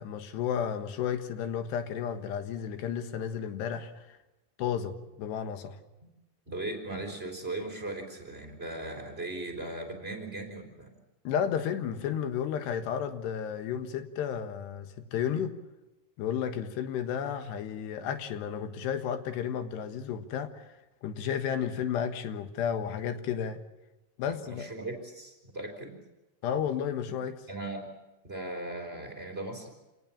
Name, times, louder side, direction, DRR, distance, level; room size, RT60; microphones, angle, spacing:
voice 1, 0.0-4.2 4.6-5.8 11.3-15.6 16.2-20.7 21.0-23.6 24.2-24.7 26.4-27.4, left 8 dB, 85° left, 8 dB, 3.6 m, -32 dB
voice 2, 6.5-10.9 24.2-26.0 27.0-27.1 27.5-27.9 28.2-29.7, right 2 dB, 15° right, 3 dB, 3.6 m, -38 dB
27.5 x 19.0 x 7.2 m, 1.0 s
omnidirectional pair, 4.7 m